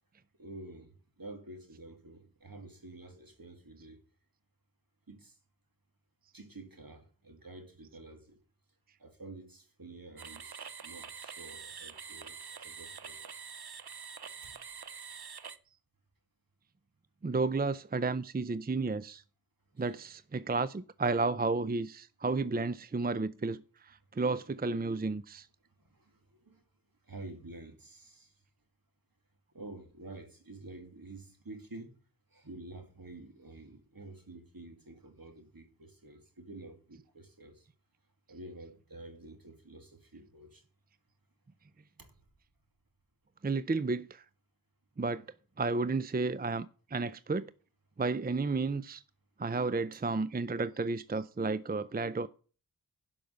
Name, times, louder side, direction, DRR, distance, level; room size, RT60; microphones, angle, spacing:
voice 1, 0.4-4.0 5.1-5.4 6.3-8.4 9.0-13.3 14.4-14.5 19.8-19.9 25.8-26.6 27.1-28.3 29.5-31.9 32.3-37.7 38.3-40.6 42.0-42.1, right 2 dB, 65° right, 2.5 m, -49 dB
sound 1, 10.2-15.6, right 6 dB, 85° right, 0.8 m, -46 dB
voice 2, 17.2-19.2 19.8-25.5 43.4-44.2 45.0-45.2 45.6-47.5 48.0-49.0 49.4-52.3, right 3 dB, 25° right, 0.5 m, -32 dB
11.5 x 5.8 x 8.0 m
wide cardioid pair, 45°, 37 cm